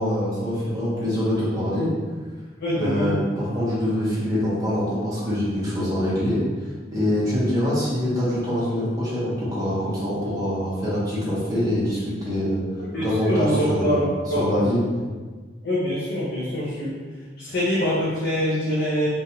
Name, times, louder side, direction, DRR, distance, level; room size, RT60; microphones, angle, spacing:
voice 1, 0.0-1.9 2.7-6.4 6.9-12.6 13.0-14.8, equal, 20° right, -9 dB, 1.1 m, -24 dB
voice 2, 2.6-3.2 12.8-14.0 14.3-14.7 15.6-17.0 17.4-19.1, equal, 60° left, -9 dB, 0.7 m, -24 dB
3.1 x 2.5 x 2.8 m, 1.4 s
head